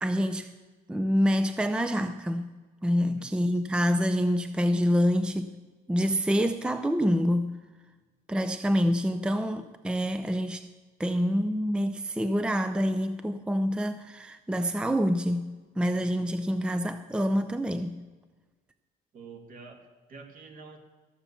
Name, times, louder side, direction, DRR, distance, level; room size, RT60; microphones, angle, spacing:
voice 1, 0.0-0.5 0.9-2.5 2.8-5.6 5.9-7.6 8.3-10.7 11.0-18.0, equal, 5° right, 0.5 m, -26 dB
voice 2, 19.1-20.8, right 4 dB, 55° right, 2.2 m, -47 dB
14.0 x 6.9 x 7.0 m
cardioid pair, 110°, 17 cm